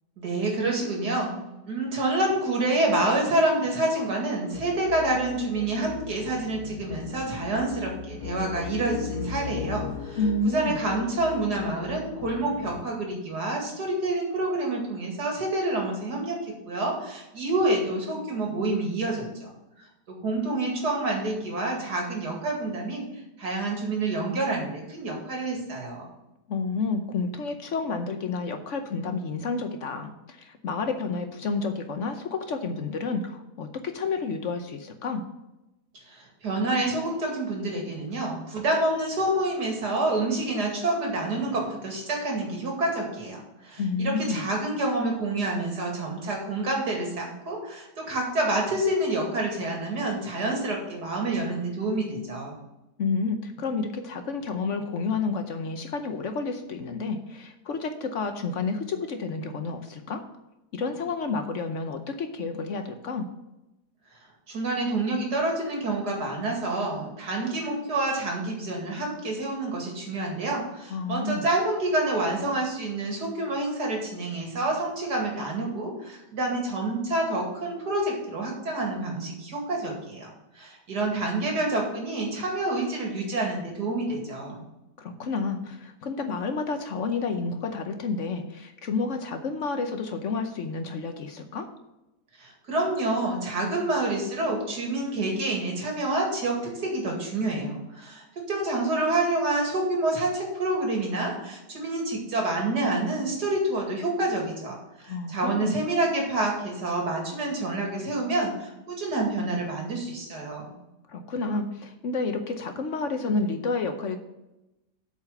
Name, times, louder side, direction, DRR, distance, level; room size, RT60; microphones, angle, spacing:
voice 1, 0.2-1.4 1.6-10.2 10.4-16.4 16.7-19.5 20.1-23.0 23.4-26.0 36.1-52.6 64.5-84.6 92.4-110.7, right 2 dB, 90° right, 0 dB, 2.8 m, -28 dB
sound 1, 4.5-12.8, left 9 dB, 85° left, 1.3 m, -38 dB
voice 2, 10.2-10.8 26.5-35.2 43.8-44.4 53.0-60.2 60.7-63.3 70.9-71.5 85.0-91.7 105.1-105.8 111.1-114.2, left 4 dB, 55° left, 7 dB, 1.0 m, -30 dB
8.3 x 4.9 x 6.7 m, 0.95 s
omnidirectional pair, 1.7 m